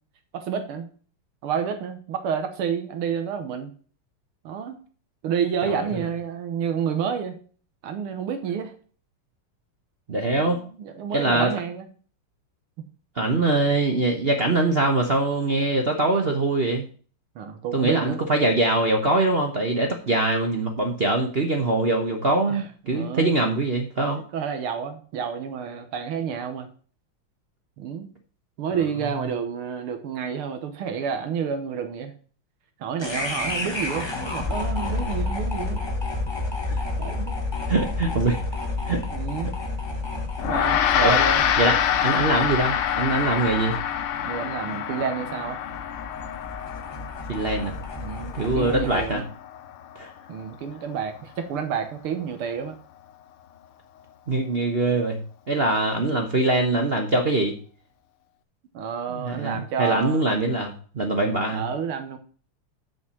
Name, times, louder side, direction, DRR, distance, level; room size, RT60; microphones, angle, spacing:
voice 1, 0.3-0.9 1.4-3.7 4.4-4.8 5.2-7.4 7.8-8.7 10.4-11.9 17.4-18.2 22.5-22.7 22.9-23.4 24.3-26.7 27.8-28.1 28.6-32.1 32.8-35.8 37.0-37.4 38.9-39.6 40.4-41.4 44.3-45.6 48.0-49.3 50.3-52.8 58.7-60.2 61.5-62.2, right 7 dB, 80° right, 8 dB, 1.9 m, -29 dB
voice 2, 10.1-10.6 11.1-11.5 13.1-16.8 17.7-24.2 36.7-36.8 37.7-38.4 38.9-39.0 41.0-41.1 41.6-41.8 42.0-43.8 47.3-47.7 48.3-49.2 49.9-50.1 54.3-57.5 59.1-61.6, right 2 dB, 45° right, 3 dB, 0.8 m, -23 dB
sound 1, 33.0-49.2, left 3 dB, 15° left, 1.0 m, -31 dB
Gong, 40.4-49.9, left 9 dB, 85° left, 1.7 m, -26 dB
7.2 x 6.1 x 6.1 m, 0.42 s
omnidirectional pair, 2.4 m